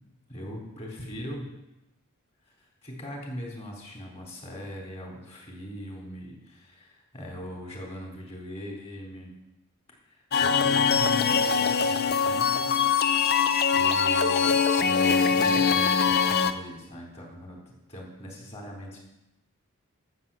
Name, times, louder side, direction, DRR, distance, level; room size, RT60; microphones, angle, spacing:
voice 1, 0.3-1.5 2.5-9.3 10.1-13.1 13.7-17.6 17.9-19.0, equal, 30° left, -2 dB, 3.6 m, -40 dB
sound 1, 10.3-16.5, left 6 dB, 45° left, 0.6 m, -22 dB
12.0 x 8.0 x 7.0 m, 0.92 s
head